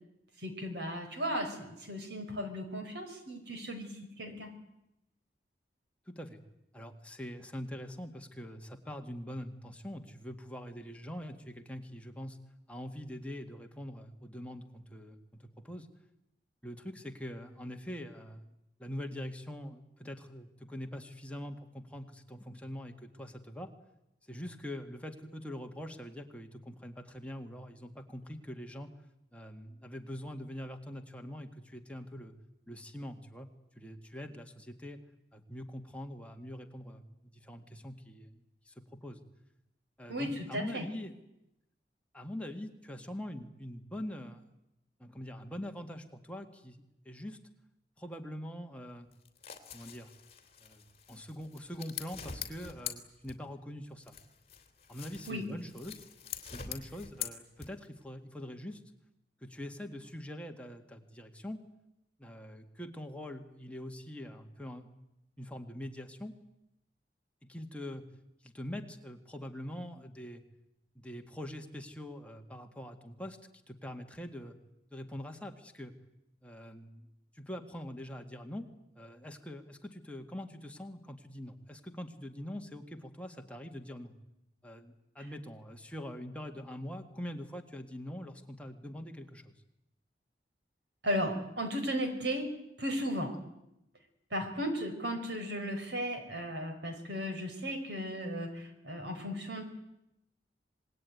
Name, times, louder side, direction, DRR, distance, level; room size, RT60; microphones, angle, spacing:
voice 1, 0.4-4.5 40.1-40.9 55.3-55.4 91.0-92.5 92.8-93.4 94.3-99.6, equal, 75° right, 7 dB, 4.5 m, -35 dB
voice 2, 6.1-6.4 6.7-12.4 12.7-15.9 16.6-18.5 18.8-23.7 24.3-28.9 29.3-32.3 32.7-33.5 33.8-35.0 35.3-38.3 38.7-39.2 40.0-41.1 42.1-44.5 45.0-47.4 48.0-49.1 49.7-50.1 50.6-54.1 54.9-56.0 56.5-58.8 59.4-61.6 62.2-65.0 65.4-66.3 67.4-68.1 68.4-70.4 71.0-73.4 73.7-74.6 74.9-75.9 76.4-77.1 77.3-78.7 79.0-84.1 84.6-89.5, equal, 5° left, 3 dB, 1.9 m, -43 dB
sound 1, 49.1-53.7 54.0-58.0, left 8 dB, 35° left, 2.9 m, -44 dB
26.5 x 20.5 x 9.4 m, 0.87 s
head